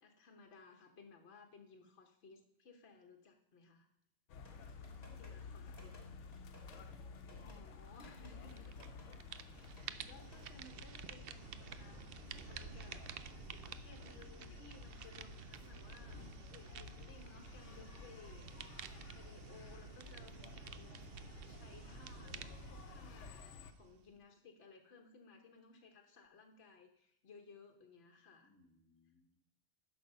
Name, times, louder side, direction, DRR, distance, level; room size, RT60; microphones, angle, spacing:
voice 1, 0.0-3.9 5.1-5.9 7.2-8.6 9.0-13.0 13.5-16.2 16.5-20.9 21.4-28.5, left 4 dB, 65° left, 2 dB, 1.3 m, -60 dB
sound 1, 4.3-23.7, left 5 dB, 85° left, 1.0 m, -53 dB
sound 2, 4.4-10.5, left 1 dB, 35° left, 1.9 m, -63 dB
voice 2, 5.1-5.9 20.3-21.3 28.4-29.4, left 1 dB, 10° left, -1 dB, 2.0 m, -70 dB
sound 3, 8.5-8.9 9.1-24.1, right 8 dB, 65° right, 0.7 m, -51 dB
11.0 x 6.1 x 5.4 m, 0.75 s
omnidirectional pair, 1.2 m